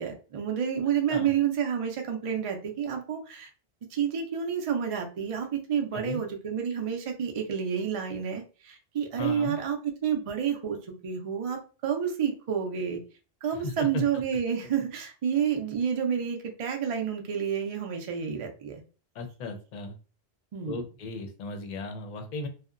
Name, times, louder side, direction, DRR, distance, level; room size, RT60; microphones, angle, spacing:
voice 1, 0.0-3.5 3.9-13.0 13.4-18.8 20.5-20.8, right 8 dB, 50° right, 3 dB, 0.4 m, -29 dB
voice 2, 9.2-9.6 13.5-14.0 19.1-19.9 20.6-22.5, left 3 dB, 55° left, 5 dB, 0.6 m, -36 dB
2.7 x 2.1 x 2.4 m, 0.36 s
omnidirectional pair, 1.1 m